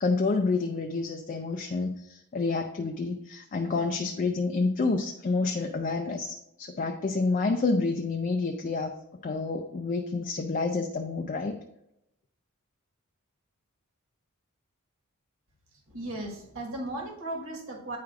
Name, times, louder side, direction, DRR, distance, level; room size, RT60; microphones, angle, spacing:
voice 1, 0.0-9.0 9.2-11.6, left 3 dB, 35° left, 4 dB, 0.4 m, -28 dB
voice 2, 15.9-18.0, right 1 dB, 65° right, 0 dB, 1.4 m, -36 dB
9.2 x 4.7 x 2.4 m, 0.83 s
head